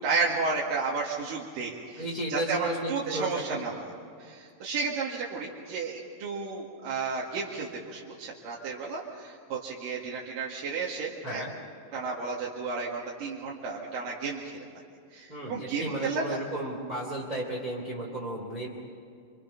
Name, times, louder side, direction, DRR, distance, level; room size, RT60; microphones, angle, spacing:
voice 1, 0.0-2.0 2.3-3.8 4.2-11.4 11.9-14.7 15.1-16.4, right 4 dB, 55° right, -4 dB, 3.0 m, -32 dB
voice 2, 2.0-3.6 11.2-11.5 15.3-18.7, right 1 dB, 15° right, -3 dB, 1.9 m, -34 dB
28.5 x 25.0 x 5.8 m, 2.4 s
omnidirectional pair, 5.8 m